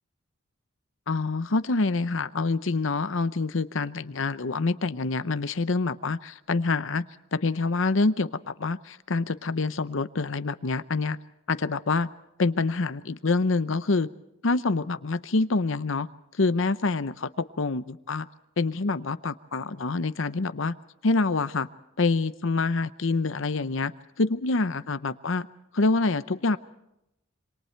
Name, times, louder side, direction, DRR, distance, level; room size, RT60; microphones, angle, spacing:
voice 1, 1.1-7.1 7.3-11.2 11.5-12.1 12.4-14.1 14.4-16.1 16.3-18.3 18.6-20.8 21.0-21.7 22.0-23.9 24.2-25.5 25.7-26.6, left 3 dB, 65° left, 13 dB, 0.7 m, -26 dB
27.0 x 25.5 x 4.5 m, 0.84 s
head